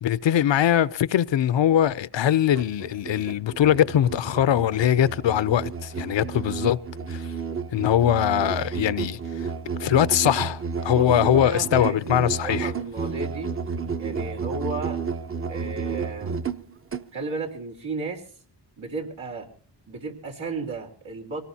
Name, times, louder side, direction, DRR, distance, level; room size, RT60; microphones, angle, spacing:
voice 1, 0.0-6.8 7.1-7.3 7.7-9.2 9.8-12.7, left 10 dB, 70° left, 0.6 m, -22 dB
Musical instrument, 2.5-17.1, right 5 dB, 30° right, 0.7 m, -32 dB
voice 2, 11.0-13.5 14.0-15.0 15.5-16.4 17.1-18.2 18.8-19.5 19.9-21.4, right 3 dB, 85° right, 3.9 m, -34 dB
24.5 x 18.5 x 2.8 m
wide cardioid pair, 85°, 46 cm